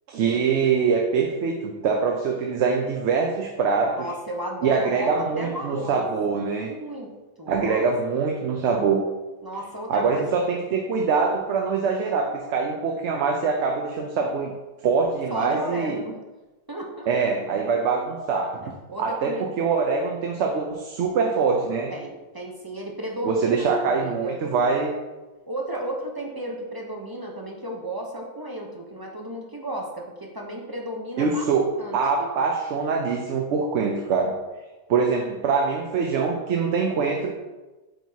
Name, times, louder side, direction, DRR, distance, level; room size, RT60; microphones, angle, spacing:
voice 1, 0.1-4.1 4.6-6.7 7.5-9.0 9.9-14.5 14.8-16.0 17.1-18.7 19.0-21.9 23.2-24.9 31.2-34.3 34.9-37.4, right 5 dB, 80° right, 2 dB, 1.0 m, -24 dB
voice 2, 4.0-6.1 6.6-7.1 7.4-7.8 8.1-8.3 9.4-10.3 15.3-16.2 16.7-17.1 18.9-19.5 21.9-24.4 25.5-31.5 31.8-32.3, right 1 dB, 25° right, -1 dB, 0.6 m, -34 dB
7.8 x 4.6 x 2.7 m, 1.1 s
omnidirectional pair, 1.2 m